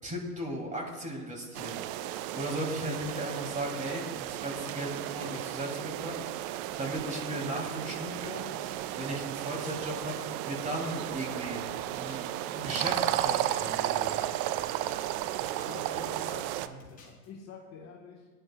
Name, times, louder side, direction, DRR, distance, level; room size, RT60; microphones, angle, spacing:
voice 1, 0.0-6.2 6.5-8.5 9.0-11.6 11.9-14.2, right 1 dB, 15° right, 0 dB, 3.1 m, -37 dB
sound 1, 1.5-16.7, right 13 dB, 35° right, 0.4 m, -34 dB
sound 2, 11.7-16.5 16.8-17.3, left 4 dB, 20° left, 3.2 m, -55 dB
voice 2, 15.6-18.3, left 4 dB, 35° left, 0 dB, 1.5 m, -46 dB
19.5 x 10.5 x 2.4 m, 1.4 s
hypercardioid pair, 100°, 46 cm